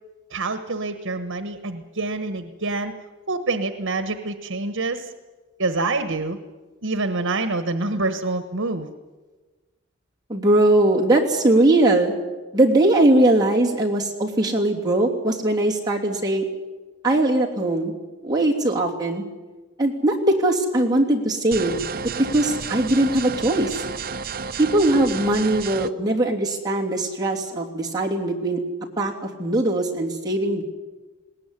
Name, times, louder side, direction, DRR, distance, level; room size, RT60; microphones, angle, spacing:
voice 1, 0.3-2.9 3.3-5.1 5.6-6.4 6.8-8.9, right 3 dB, 80° right, 9 dB, 1.3 m, -26 dB
voice 2, 10.3-12.1 12.5-16.4 17.0-17.9 18.2-19.2 19.8-23.8 24.6-28.6 29.0-30.6, right 1 dB, 20° right, -2 dB, 3.0 m, -20 dB
sound 1, 21.5-25.9, right 5 dB, 45° right, 0.8 m, -31 dB
20.5 x 18.0 x 9.9 m, 1.3 s
head